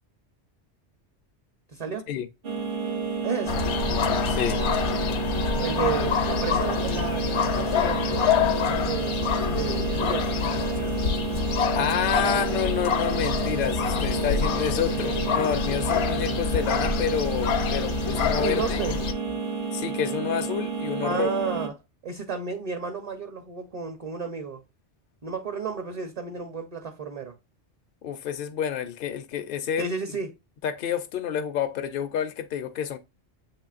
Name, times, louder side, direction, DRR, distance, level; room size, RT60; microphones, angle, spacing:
voice 1, 1.7-2.1 3.2-3.7 5.6-9.2 9.5-10.5 18.4-19.0 21.0-21.8 22.0-24.6 25.2-27.3 29.8-30.3, right 5 dB, 40° right, 0.6 m, -32 dB
sound 1, 2.4-21.7, right 5 dB, 55° right, 1.0 m, -30 dB
sound 2, 3.5-19.1, left 7 dB, 75° left, 1.0 m, -27 dB
voice 2, 4.3-4.6 11.7-18.8 19.7-21.3 28.0-29.9 30.6-33.0, left 8 dB, 60° left, 0.6 m, -29 dB
7.5 x 2.9 x 2.4 m
omnidirectional pair, 1.2 m